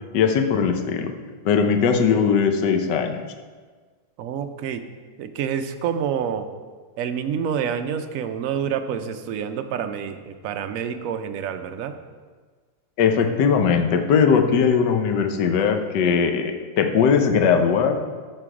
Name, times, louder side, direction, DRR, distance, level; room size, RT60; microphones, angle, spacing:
voice 1, 0.1-1.1 1.4-3.2 13.0-18.0, left 6 dB, 70° left, 5 dB, 1.4 m, -19 dB
voice 2, 4.2-4.8 5.2-6.5 7.0-11.9, right 8 dB, 70° right, 7 dB, 0.8 m, -28 dB
13.5 x 4.5 x 4.8 m, 1.5 s
omnidirectional pair, 2.0 m